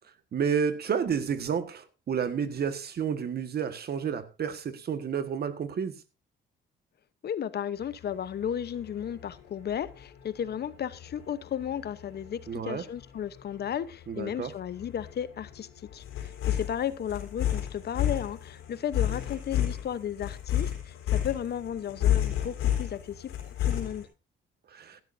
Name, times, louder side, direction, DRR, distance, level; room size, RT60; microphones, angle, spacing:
voice 1, 0.3-5.9 12.5-12.8 14.1-14.5 24.7-25.0, right 7 dB, 55° right, 1.5 m, -30 dB
voice 2, 7.2-24.1, left 9 dB, 55° left, 0.9 m, -34 dB
sound 1, 7.8-24.0, left 11 dB, 90° left, 3.5 m, -32 dB
16.0 x 12.0 x 2.6 m
cardioid pair, 90°, 20 cm